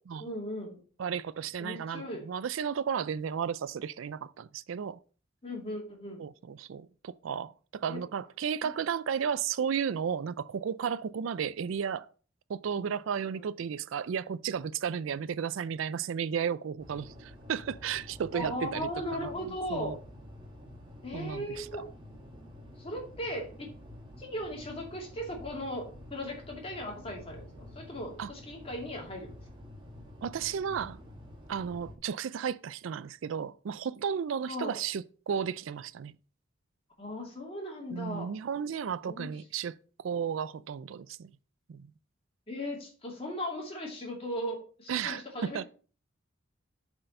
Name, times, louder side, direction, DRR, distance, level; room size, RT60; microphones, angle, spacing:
voice 1, 0.2-0.8 1.6-2.2 5.4-6.2 7.9-8.0 13.3-13.4 18.3-19.9 21.0-21.8 22.8-23.7 24.2-25.8 26.1-29.3 34.4-34.8 37.0-38.3 39.0-39.3 42.5-45.7, left 1 dB, 30° left, 2.4 m, -37 dB
voice 2, 1.0-5.0 6.2-12.1 12.5-19.3 19.7-20.0 21.1-21.7 28.2-28.3 30.2-31.0 31.5-36.2 37.9-39.7 40.0-41.3 41.7-41.9 44.9-45.6, right 7 dB, 75° right, 0.4 m, -33 dB
sound 1, 16.8-31.9, left 1 dB, 25° right, 1.5 m, -49 dB
7.6 x 4.5 x 5.3 m
head